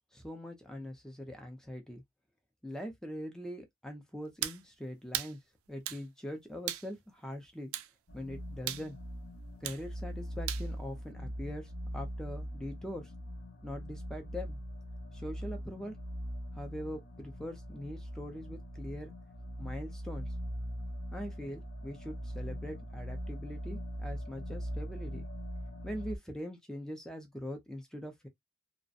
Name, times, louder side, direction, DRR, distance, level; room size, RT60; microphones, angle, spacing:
voice 1, 0.1-2.0 2.6-5.4 5.7-7.7 8.1-9.0 9.6-13.1 13.6-14.6 15.1-16.0 16.5-19.1 19.6-20.3 21.1-25.3 25.8-28.3, equal, 5° left, 0.4 m, -42 dB
sound 1, 4.4-4.6 5.1-5.3 5.9-6.0 6.7-6.9 7.7-7.9 8.7-8.9 9.6-9.8 10.5-10.7, right 12 dB, 80° right, 0.3 m, -36 dB
sound 2, 8.1-26.2, equal, 45° left, 0.6 m, -41 dB
2.4 x 2.1 x 2.5 m
head